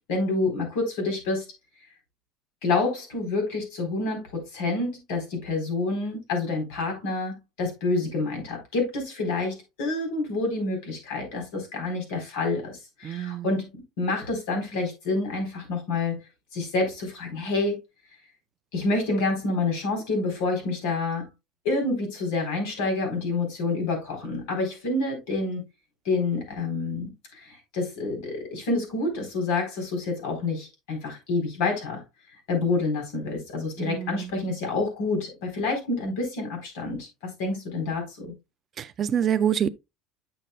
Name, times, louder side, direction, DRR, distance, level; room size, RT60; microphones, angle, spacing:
voice 1, 0.1-1.5 2.6-13.7 14.0-16.2 16.5-17.8 18.7-21.3 21.6-25.6 26.0-32.0 32.5-37.1 37.4-38.3, left 3 dB, 80° left, 4.1 m, -28 dB
voice 2, 13.0-13.5 33.8-34.3 38.8-39.7, right 9 dB, 25° right, 0.3 m, -26 dB
8.6 x 6.5 x 2.3 m
cardioid pair, 175°, 0 cm